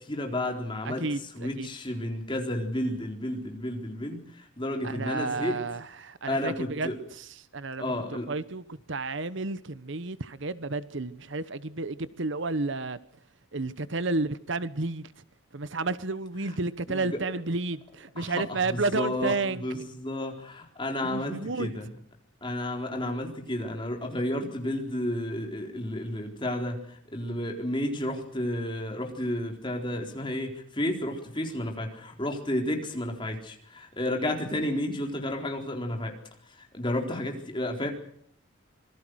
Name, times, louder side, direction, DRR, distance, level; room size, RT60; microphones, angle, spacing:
voice 1, 0.0-1.0 1.3-5.6 6.3-7.0 7.8-8.3 16.4-16.6 16.9-17.2 18.2-21.9 22.4-36.1 36.6-37.9, left 1 dB, 25° left, 4.0 m, -32 dB
voice 2, 0.8-1.7 4.8-6.9 7.5-7.9 8.3-8.6 8.9-13.0 13.5-15.1 15.5-19.6 21.0-21.7, right 3 dB, 65° right, 1.0 m, -31 dB
26.5 x 21.0 x 6.4 m
head